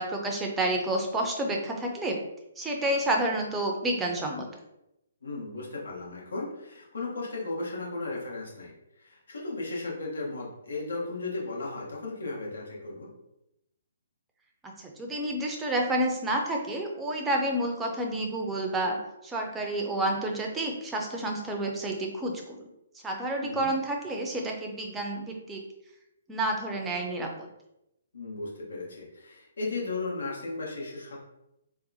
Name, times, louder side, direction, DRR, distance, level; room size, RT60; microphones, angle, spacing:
voice 1, 0.0-2.2 2.6-4.4 14.8-19.0 19.2-22.7 23.0-25.6 26.3-27.5, right 1 dB, 10° right, 1 dB, 0.5 m, -29 dB
voice 2, 5.2-13.1 23.4-23.7 28.1-31.2, left 3 dB, 70° left, -3 dB, 1.1 m, -35 dB
4.0 x 2.1 x 2.7 m, 0.86 s
figure-of-eight pair, 130°, 0 cm